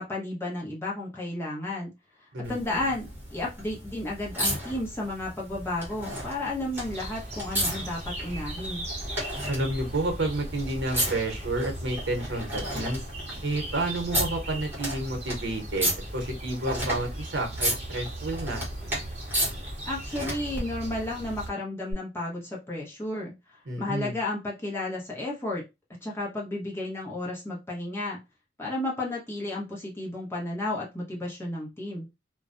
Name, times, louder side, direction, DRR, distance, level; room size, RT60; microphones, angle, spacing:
voice 1, 0.0-1.9 2.5-8.8 19.8-23.3 23.8-25.6 26.0-28.2 28.6-32.1, left 2 dB, 15° left, -4 dB, 0.9 m, -32 dB
voice 2, 2.3-2.9 9.5-13.0 13.4-18.6 23.7-24.2, right 2 dB, 75° right, 4 dB, 0.8 m, -30 dB
sound 1, 2.4-20.6 21.9-22.0, equal, 10° right, 1.0 m, -34 dB
sound 2, 6.7-21.5, right 1 dB, 35° right, 0.8 m, -38 dB
2.4 x 2.1 x 2.5 m, 0.24 s
head